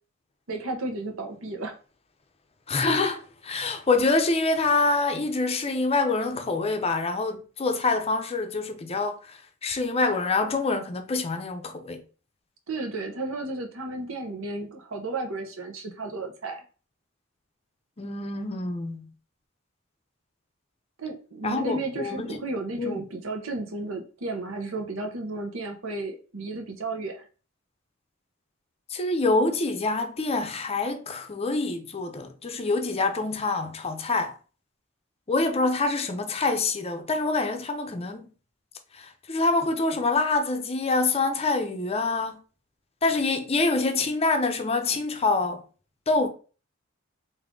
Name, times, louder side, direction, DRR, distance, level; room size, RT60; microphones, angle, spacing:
voice 1, 0.5-1.8 12.7-16.6 21.0-27.2, right 2 dB, 85° right, 0.9 m, -33 dB
voice 2, 2.7-12.0 18.0-19.1 21.4-22.4 22.8-23.0 28.9-34.3 35.3-38.3 38.9-42.4 43.0-45.6 46.1-46.3, left 3 dB, 30° left, 0.5 m, -26 dB
3.6 x 2.6 x 3.7 m
head